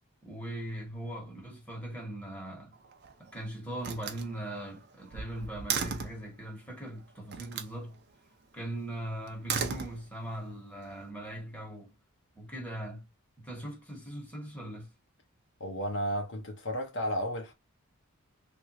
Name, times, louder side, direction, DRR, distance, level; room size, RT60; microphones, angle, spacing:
voice 1, 0.2-2.7 3.2-8.0 8.5-11.9 12.3-13.1 13.4-14.9, right 1 dB, 5° left, 1.1 m, -40 dB
Slam, 2.7-3.3 3.8-6.3 7.3-7.8 9.3-10.4, right 6 dB, 50° right, 0.5 m, -36 dB
voice 2, 15.6-17.5, equal, 55° left, 0.8 m, -33 dB
3.2 x 2.5 x 2.9 m
head